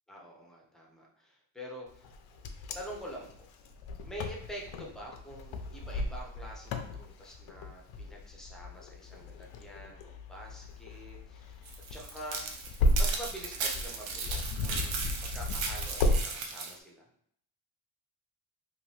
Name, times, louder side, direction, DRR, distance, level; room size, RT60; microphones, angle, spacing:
voice 1, 0.1-2.1 2.7-3.3 4.0-17.1, equal, ahead, -2 dB, 0.3 m, -46 dB
Wind, 2.0-16.2, left 1 dB, 90° left, 0.5 m, -34 dB
sound 1, 11.7-16.7, right 4 dB, 90° right, 0.7 m, -36 dB
2.8 x 2.5 x 3.1 m, 0.67 s
cardioid pair, 170°, 46 cm